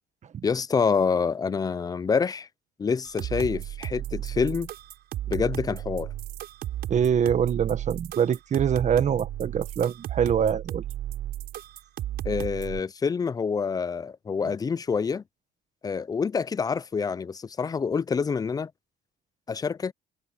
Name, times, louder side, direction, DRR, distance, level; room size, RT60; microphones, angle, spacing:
voice 1, 0.4-2.5 2.8-4.7 5.3-6.1 12.2-15.2 15.8-18.7 19.5-19.9, left 5 dB, 20° left, 0.5 m, -27 dB
sound 1, 3.0-12.8, right 13 dB, 70° right, 6.4 m, -34 dB
voice 2, 6.9-10.8, right 8 dB, 45° right, 1.6 m, -24 dB
cardioid pair, 110°, 17 cm